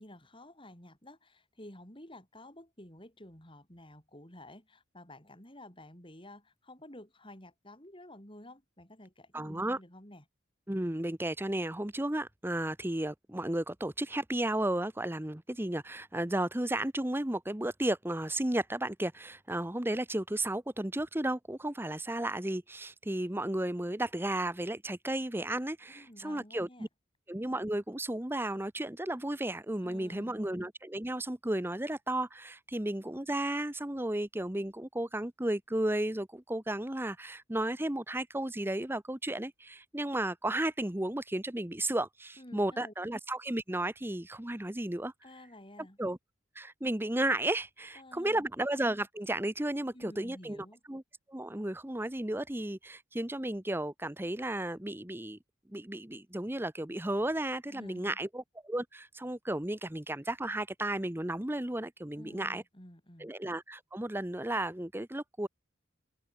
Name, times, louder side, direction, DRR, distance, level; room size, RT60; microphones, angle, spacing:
voice 1, 0.0-10.2 25.9-26.9 29.8-30.4 42.4-42.9 45.2-46.0 48.0-48.5 49.9-50.8 57.7-58.2 62.2-63.3, left 1 dB, 25° left, 6.9 m, -51 dB
voice 2, 9.3-9.8 10.7-26.9 27.3-45.1 46.0-46.2 46.5-51.0 51.3-55.4 55.7-62.6 63.2-65.5, right 1 dB, 10° right, 0.9 m, -33 dB
head